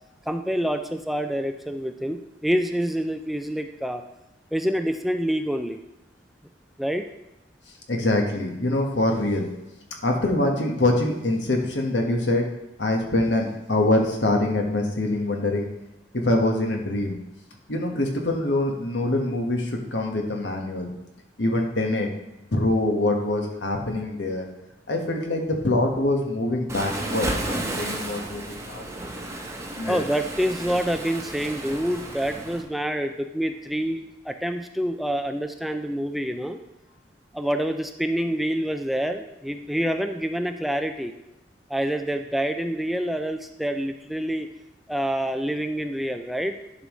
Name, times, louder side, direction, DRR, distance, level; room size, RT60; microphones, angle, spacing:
voice 1, 0.3-4.0 4.5-5.8 6.8-7.1 29.9-36.6 37.3-41.1 41.7-44.5 44.9-46.6, equal, ahead, 6 dB, 0.4 m, -27 dB
voice 2, 7.9-9.5 10.0-12.5 12.8-15.7 16.1-17.2 17.7-20.9 21.4-22.1 22.5-24.4 24.9-28.8 29.8-30.0, left 2 dB, 75° left, 2 dB, 1.4 m, -24 dB
Waves surf, 26.7-32.6, right 1 dB, 15° right, 1.0 m, -33 dB
11.0 x 5.4 x 3.2 m, 0.96 s
head